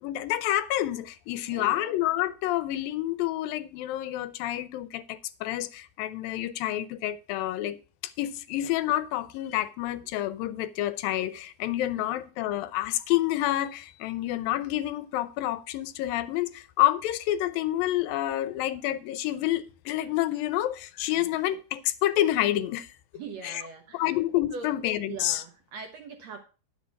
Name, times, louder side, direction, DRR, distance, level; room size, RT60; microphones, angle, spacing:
voice 1, 0.0-7.8 8.0-22.9 23.4-23.6 23.9-25.4, left 14 dB, 85° left, 2.5 m, -28 dB
voice 2, 1.4-1.9 11.9-12.1 21.2-21.3 23.1-24.2 24.5-24.7 25.0-26.4, right 5 dB, 65° right, 1.9 m, -42 dB
11.0 x 6.3 x 5.8 m
omnidirectional pair, 4.0 m